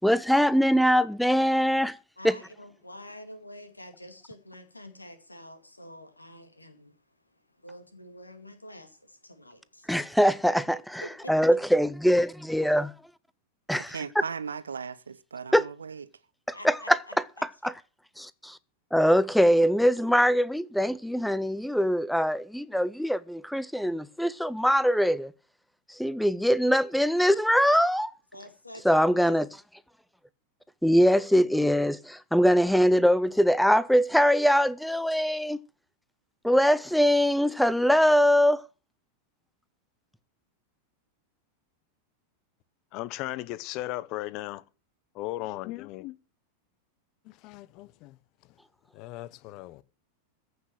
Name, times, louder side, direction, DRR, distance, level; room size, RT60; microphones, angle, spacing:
voice 1, 0.0-2.0 2.2-2.4 9.9-12.9 13.7-14.0 15.5-15.6 16.5-17.0 17.6-17.7 18.2-18.6 18.9-25.3 25.9-28.1 28.8-29.5 30.8-35.6 36.4-38.7, equal, ahead, 0.5 m, -22 dB
voice 2, 2.2-7.0 7.2-9.9 11.0-11.3 16.5-17.1 28.3-29.3, equal, 85° left, 2.2 m, -47 dB
voice 3, 13.7-16.0, right 6 dB, 70° right, 0.8 m, -37 dB
voice 4, 42.9-44.6 45.2-46.1 47.4-48.1 48.9-49.8, left 17 dB, 40° left, 0.7 m, -36 dB
15.0 x 6.1 x 7.7 m
figure-of-eight pair, 90°, 0 cm